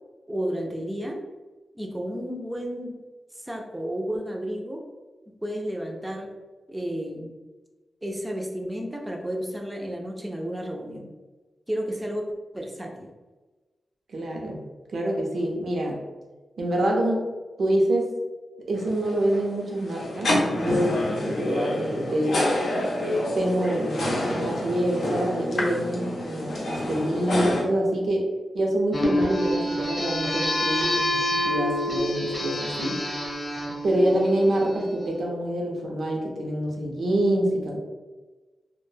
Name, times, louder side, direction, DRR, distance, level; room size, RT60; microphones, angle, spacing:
voice 1, 0.3-1.2 1.7-2.9 3.4-4.8 5.3-6.3 6.7-7.3 8.0-11.1 11.7-12.2 12.5-13.1, equal, 10° right, 1 dB, 0.4 m, -32 dB
voice 2, 14.1-14.6 14.9-16.0 16.6-17.3 17.6-18.1 18.7-22.4 23.3-28.3 28.5-33.0 33.8-37.8, right 1 dB, 70° right, 0 dB, 0.5 m, -26 dB
sound 1, 18.7-27.6, left 1 dB, 85° left, 0.5 m, -28 dB
sound 2, 28.9-34.9, left 1 dB, 25° left, 0.7 m, -27 dB
2.1 x 2.0 x 3.1 m, 1.2 s
wide cardioid pair, 95°, 0 cm